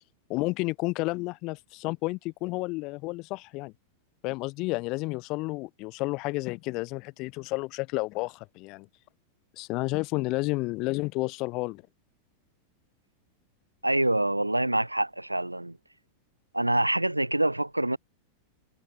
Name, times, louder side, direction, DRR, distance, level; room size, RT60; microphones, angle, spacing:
voice 1, 0.3-3.7 4.2-8.9 9.6-11.8, left 23 dB, 40° left, 0.9 m, -31 dB
voice 2, 13.8-15.8 16.5-18.0, right 1 dB, 85° right, 0.7 m, -26 dB
figure-of-eight pair, 90°, 0 cm